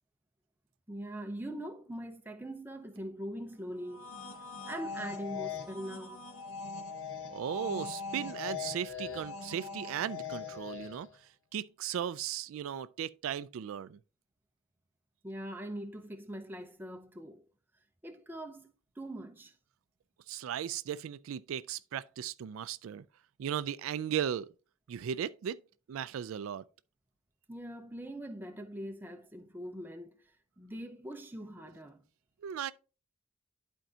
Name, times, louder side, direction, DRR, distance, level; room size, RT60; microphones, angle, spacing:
voice 1, 0.9-4.1 4.7-6.2 15.2-17.4 18.0-19.5 27.5-30.2 30.6-32.0, right 1 dB, 10° right, 0.6 m, -42 dB
sound 1, 3.8-11.2, left 5 dB, 75° left, 1.0 m, -41 dB
voice 2, 7.3-11.1 11.5-14.0 20.3-23.0 23.4-24.5 24.9-25.6 25.9-26.6 32.4-32.7, right 9 dB, 75° right, 0.3 m, -36 dB
11.5 x 4.5 x 2.8 m
head